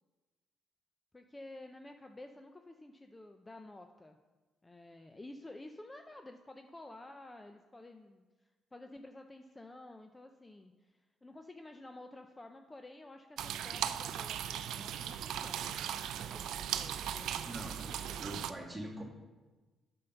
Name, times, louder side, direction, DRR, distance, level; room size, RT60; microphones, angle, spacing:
voice 1, 1.1-4.2 4.6-8.3 8.7-15.7 16.1-18.2, left 2 dB, 15° left, 5 dB, 0.6 m, -52 dB
sound 1, 13.4-18.5, right 10 dB, 80° right, 0.4 m, -38 dB
voice 2, 17.4-19.0, right 1 dB, 15° right, -1 dB, 2.1 m, -44 dB
8.8 x 5.5 x 5.8 m, 1.2 s
cardioid pair, 90°, 0 cm